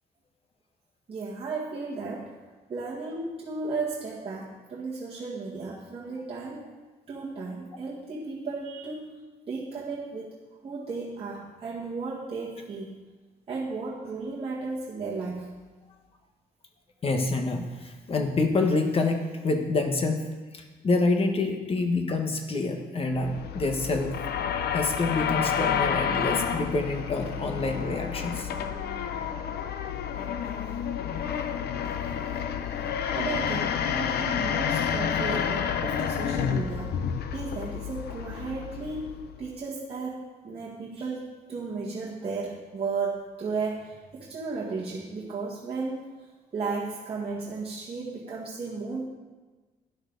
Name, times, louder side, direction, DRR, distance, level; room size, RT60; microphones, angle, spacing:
voice 1, 1.1-2.4 2.7-6.7 7.1-9.2 9.5-10.3 10.6-12.9 13.5-15.5 33.1-37.0 37.3-46.1 46.5-49.1, right 4 dB, 35° right, -6 dB, 1.7 m, -34 dB
voice 2, 17.0-20.3 20.5-24.1 24.7-28.5, left 3 dB, 35° left, 4 dB, 1.4 m, -27 dB
sound 1, 23.1-39.5, left 8 dB, 85° left, 0.8 m, -30 dB
Bowed string instrument, 25.7-30.6, left 1 dB, 20° left, 3.0 m, -45 dB
12.0 x 11.0 x 4.0 m, 1.3 s
cardioid pair, 145°, 16 cm